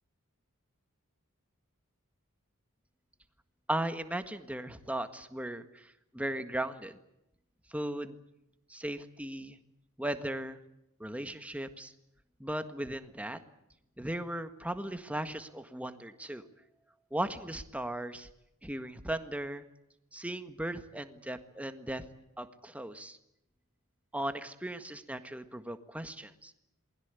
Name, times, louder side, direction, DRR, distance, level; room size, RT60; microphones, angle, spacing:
voice 1, 3.7-7.0 7.7-8.2 8.7-9.6 10.0-10.6 11.0-11.9 12.4-13.4 14.0-16.4 17.1-18.3 18.6-19.6 20.1-22.0 22.4-23.2 24.1-26.5, right 1 dB, 5° right, 9 dB, 1.6 m, -37 dB
27.5 x 21.0 x 8.3 m, 0.82 s
head